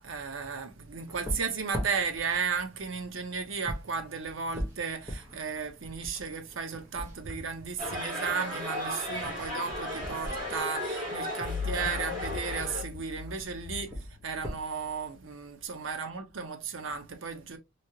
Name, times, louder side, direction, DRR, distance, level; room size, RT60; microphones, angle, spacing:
voice 1, 0.0-17.6, right 5 dB, 70° right, 0.7 m, -34 dB
sound 1, 1.0-11.6 12.4-12.9 13.1-14.6, equal, 15° right, 0.9 m, -41 dB
sound 2, 7.8-12.8, left 1 dB, 40° right, 2.1 m, -35 dB
sound 3, 11.5-15.0, left 5 dB, 45° left, 0.3 m, -39 dB
3.1 x 2.8 x 2.6 m
head